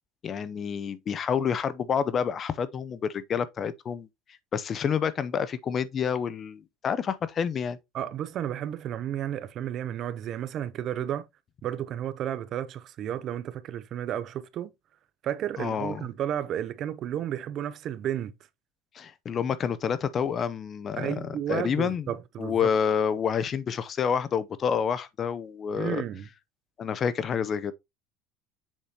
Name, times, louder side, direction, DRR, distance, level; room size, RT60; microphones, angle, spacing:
voice 1, 0.2-4.1 4.5-7.8 15.6-16.1 18.9-22.1 22.4-26.0 26.8-27.7, left 7 dB, 35° left, 0.6 m, -28 dB
voice 2, 7.9-11.3 11.6-14.7 15.2-18.3 21.0-22.7 25.8-26.3, right 10 dB, 45° right, 0.6 m, -32 dB
7.3 x 4.9 x 2.8 m
supercardioid pair, 115°, 0 cm